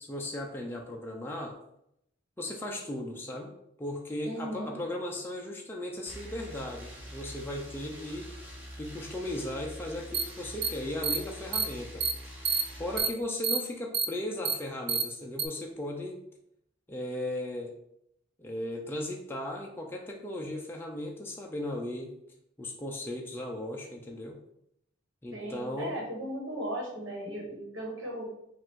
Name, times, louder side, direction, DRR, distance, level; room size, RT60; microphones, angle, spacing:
voice 1, 0.0-1.6 2.4-3.5 3.8-8.5 8.8-12.1 12.8-16.2 16.9-17.7 18.4-22.1 22.6-24.4 25.2-26.0, left 1 dB, 10° left, -1 dB, 0.4 m, -36 dB
voice 2, 4.2-4.7 25.3-28.3, equal, 65° right, -3 dB, 1.4 m, -37 dB
sound 1, 6.1-13.0, equal, 10° right, 0.8 m, -45 dB
sound 2, 10.1-10.2 10.6-10.7 11.0-11.2 11.5-11.6 12.0-12.1 12.4-12.6 13.0-13.1 13.4-13.6 13.9-14.0 14.4-14.5 14.9-15.0 15.4-15.5, right 6 dB, 50° right, 0.5 m, -27 dB
5.2 x 2.5 x 3.7 m, 0.76 s
head